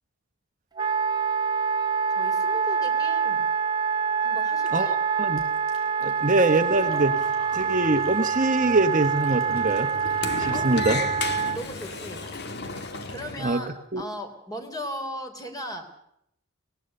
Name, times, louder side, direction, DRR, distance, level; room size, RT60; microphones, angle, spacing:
Wind instrument woodwind instrument, 0.8-11.6, right 6 dB, 20° right, 1.5 m, -26 dB
voice 1, 2.1-3.5 4.2-4.9 10.5-10.7 11.5-12.3 13.1-15.8, equal, 15° left, 5 dB, 3.6 m, -37 dB
voice 2, 4.7-5.4 6.0-7.1 7.5-9.9 10.4-11.0 13.4-13.6 13.9-14.0, right 2 dB, 40° right, 7 dB, 1.2 m, -23 dB
Fill (with liquid), 5.4-13.5, left 2 dB, 80° left, 5.6 m, -48 dB
Sliding door, 6.5-13.5, left 3 dB, 55° left, 1.6 m, -36 dB
23.5 x 18.5 x 6.7 m, 0.75 s
head